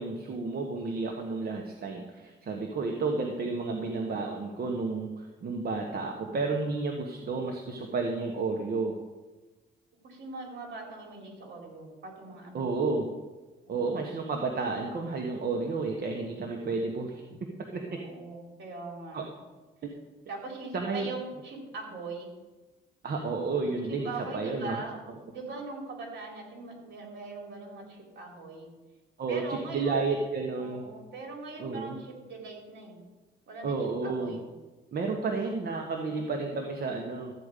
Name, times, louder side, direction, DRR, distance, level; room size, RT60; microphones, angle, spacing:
voice 1, 0.0-8.9 12.5-13.1 13.7-17.2 17.7-18.0 19.1-19.2 19.8-19.9 20.7-21.1 23.0-24.8 29.2-30.9 31.6-32.0 33.6-34.4 34.9-37.3, right 3 dB, 50° right, 2 dB, 1.3 m, -31 dB
voice 2, 10.0-12.9 13.7-14.2 17.9-19.2 20.3-22.3 23.5-25.0 25.3-28.7 29.3-30.1 30.6-33.0 33.5-33.8 34.0-34.5, right 3 dB, 65° right, 0 dB, 3.6 m, -41 dB
13.0 x 5.0 x 8.3 m, 1.2 s
cardioid pair, 90°, 20 cm